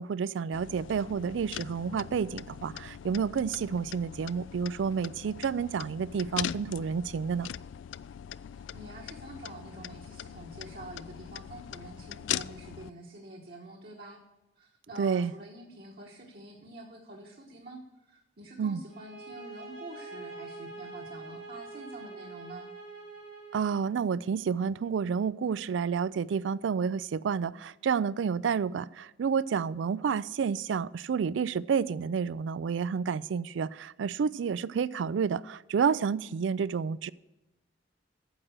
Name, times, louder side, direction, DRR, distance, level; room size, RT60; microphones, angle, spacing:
voice 1, 0.0-7.5 15.0-15.3 18.6-18.8 23.5-37.1, right 6 dB, 75° right, 0.3 m, -30 dB
sound 1, 0.5-12.9, left 10 dB, 85° left, 0.3 m, -41 dB
voice 2, 8.5-14.2 14.6-22.7, right 2 dB, 55° right, 1.3 m, -47 dB
sound 2, 18.9-23.9, right 3 dB, 90° right, 4.0 m, -45 dB
9.5 x 7.4 x 6.4 m
head